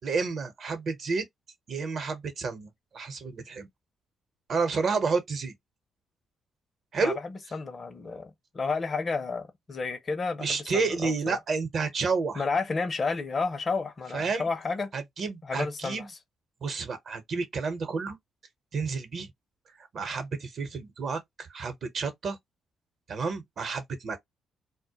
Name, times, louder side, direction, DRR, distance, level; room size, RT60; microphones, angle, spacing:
voice 1, 0.0-1.3 1.7-2.7 2.9-3.7 4.5-5.5 6.9-7.2 10.4-12.4 14.1-14.5 14.9-16.1 16.6-18.2 18.7-19.3 19.9-22.4 23.1-24.2, right 4 dB, 60° right, 0.8 m, -30 dB
voice 2, 7.0-11.4 12.3-14.9 15.4-16.2, left 4 dB, 45° left, 0.6 m, -31 dB
2.1 x 2.1 x 2.8 m
hypercardioid pair, 50°, 0 cm